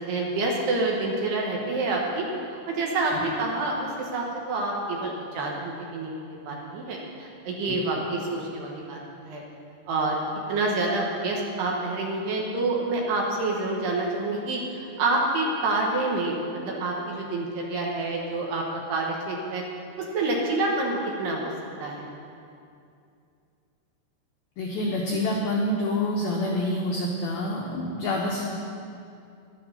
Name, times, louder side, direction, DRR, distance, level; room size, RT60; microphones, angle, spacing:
voice 1, 0.1-9.4 9.9-10.2 10.5-18.6 18.9-19.6 20.0-21.5 21.8-22.1, right 2 dB, 70° right, -1 dB, 2.9 m, -28 dB
voice 2, 24.6-28.5, left 1 dB, 85° left, -1 dB, 2.1 m, -27 dB
11.5 x 11.5 x 5.6 m, 2.5 s
omnidirectional pair, 5.6 m